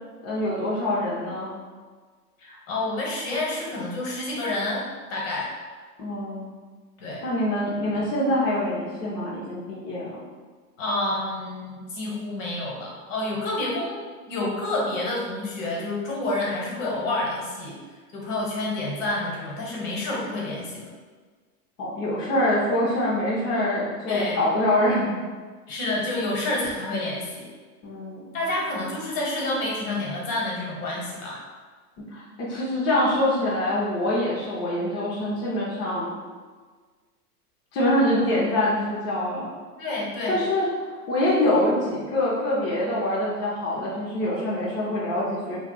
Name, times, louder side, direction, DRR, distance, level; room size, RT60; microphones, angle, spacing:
voice 1, 0.2-1.5 6.0-6.5 7.2-10.2 21.8-25.2 27.8-28.4 32.1-36.1 37.7-39.5 40.3-45.6, left 1 dB, 25° left, -7 dB, 0.6 m, -25 dB
voice 2, 2.4-4.8 5.1-5.5 7.0-7.2 10.8-14.0 14.3-17.7 18.1-20.9 24.0-24.4 25.7-27.5 28.3-31.4 39.8-40.4, left 2 dB, 55° left, -3 dB, 1.2 m, -28 dB
2.4 x 2.3 x 3.9 m, 1.5 s
hypercardioid pair, 110°, 47 cm